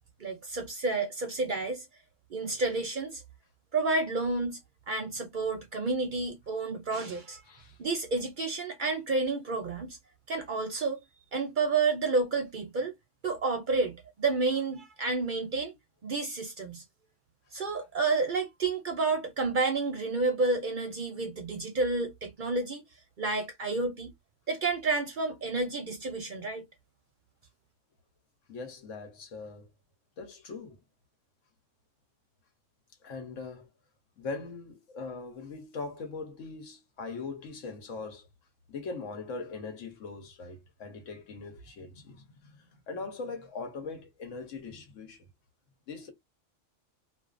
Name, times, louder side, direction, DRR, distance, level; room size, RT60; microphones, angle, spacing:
voice 1, 0.2-1.9 2.3-3.2 3.7-4.6 4.9-7.4 7.8-10.0 10.3-11.0 11.3-12.9 13.2-15.8 16.0-16.8 17.5-22.8 23.2-24.1 24.5-26.6, right 3 dB, 55° right, 0.6 m, -30 dB
voice 2, 7.5-7.8 28.5-29.7 30.2-30.8 33.0-33.7 34.2-38.3 38.7-45.3 45.9-46.1, left 4 dB, 80° left, 1.2 m, -41 dB
2.5 x 2.3 x 2.4 m
omnidirectional pair, 1.3 m